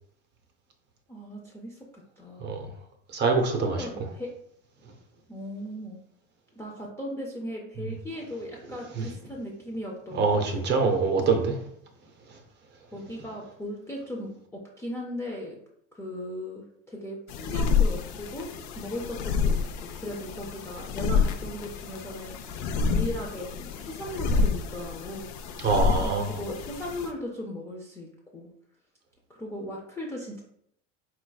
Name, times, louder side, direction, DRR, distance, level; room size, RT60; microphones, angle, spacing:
voice 1, 1.1-2.4 3.5-4.3 5.3-6.0 6.6-10.6 12.9-15.6 15.9-18.5 18.7-22.4 22.9-25.3 26.0-28.5 29.3-30.4, left 1 dB, 10° left, -3 dB, 0.4 m, -37 dB
voice 2, 3.1-3.8 9.0-9.1 10.2-11.5 25.6-26.3, right 4 dB, 30° right, 5 dB, 0.6 m, -24 dB
sound 1, 17.3-27.1, left 5 dB, 55° left, 0.6 m, -28 dB
4.8 x 4.1 x 2.3 m, 0.70 s
supercardioid pair, 145°, 37 cm